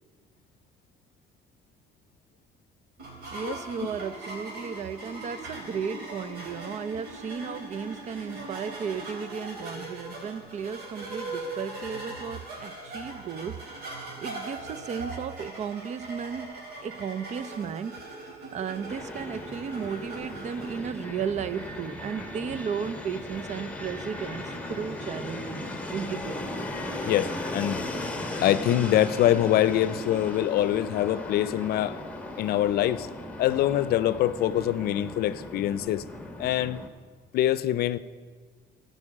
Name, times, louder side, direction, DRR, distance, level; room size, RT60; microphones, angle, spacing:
sound 1, 3.0-20.8, right 2 dB, 70° right, 3.5 m, -40 dB
voice 1, 3.3-13.7 14.2-18.1 18.5-26.5, right 7 dB, 45° right, 0.5 m, -34 dB
Fixed-wing aircraft airplane, 18.9-36.9, left 1 dB, 10° left, 1.3 m, -37 dB
voice 2, 27.1-27.8 28.4-32.0 32.4-33.1 33.4-36.0 36.4-36.8 37.3-38.0, left 12 dB, 65° left, 0.5 m, -24 dB
14.0 x 5.4 x 8.5 m
cardioid pair, 110°, 17 cm